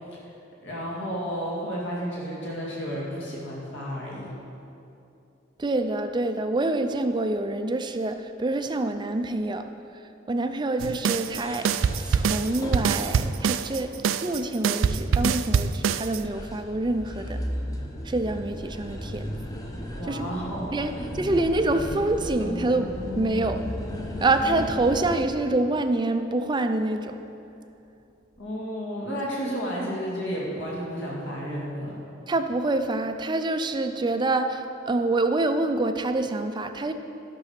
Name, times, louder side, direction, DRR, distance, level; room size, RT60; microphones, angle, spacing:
voice 1, 0.6-4.3 19.9-21.1 28.4-32.0, equal, 65° left, -5 dB, 2.3 m, -32 dB
voice 2, 5.6-9.7 10.3-11.7 12.0-13.9 14.2-17.4 18.0-19.3 20.1-20.3 20.7-23.6 24.2-27.2 32.3-36.9, right 2 dB, 25° right, 8 dB, 0.4 m, -26 dB
sound 1, 10.8-16.2, right 6 dB, 85° right, 0.4 m, -24 dB
sound 2, 11.0-25.2, equal, 20° left, 0.8 m, -36 dB
Bowed string instrument, 27.3-27.6, equal, 85° left, 0.9 m, -47 dB
12.5 x 6.2 x 5.8 m, 2.7 s
head